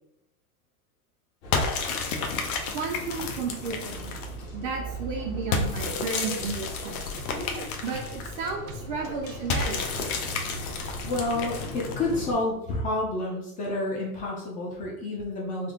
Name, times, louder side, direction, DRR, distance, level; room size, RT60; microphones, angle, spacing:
sound 1, 1.4-12.3, right 1 dB, 40° left, 0.9 m, -39 dB
sound 2, 1.5-4.4 5.5-8.5 9.5-12.1, left 4 dB, 85° left, 0.8 m, -31 dB
voice 1, 2.7-4.1 4.5-7.0 7.3-7.4 7.8-9.9, right 4 dB, 35° right, 2 dB, 0.4 m, -33 dB
sound 3, 4.7-9.9, equal, 70° right, 0.8 m, -42 dB
voice 2, 11.0-15.7, left 2 dB, 20° left, -3 dB, 0.4 m, -29 dB
3.5 x 2.1 x 3.6 m, 0.78 s
supercardioid pair, 150°, 42 cm